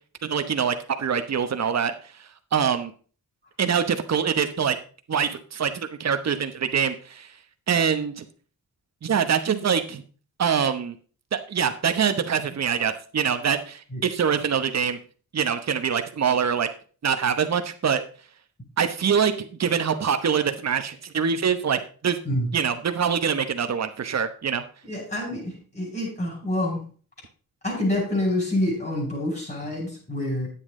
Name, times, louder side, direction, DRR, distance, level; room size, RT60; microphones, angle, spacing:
voice 1, 0.2-1.9 2.5-2.9 3.6-4.8 5.1-7.3 7.7-8.2 9.0-10.0 10.4-10.9 11.3-15.0 15.3-16.7 17.0-18.0 18.8-19.3 19.6-22.2 22.5-24.6, right 7 dB, 45° right, 8 dB, 1.0 m, -24 dB
voice 2, 24.8-26.8 27.6-30.5, left 1 dB, 25° left, -2 dB, 5.6 m, -27 dB
9.7 x 8.3 x 3.8 m, 0.40 s
cardioid pair, 75°, 36 cm